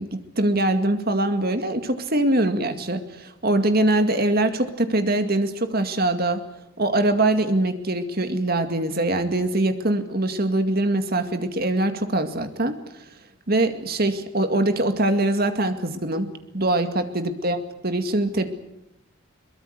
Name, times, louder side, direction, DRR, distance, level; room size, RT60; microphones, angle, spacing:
voice 1, 0.0-6.4 6.8-12.7 13.5-18.5, right 1 dB, 45° right, 8 dB, 2.2 m, -23 dB
23.0 x 21.5 x 8.2 m, 0.82 s
head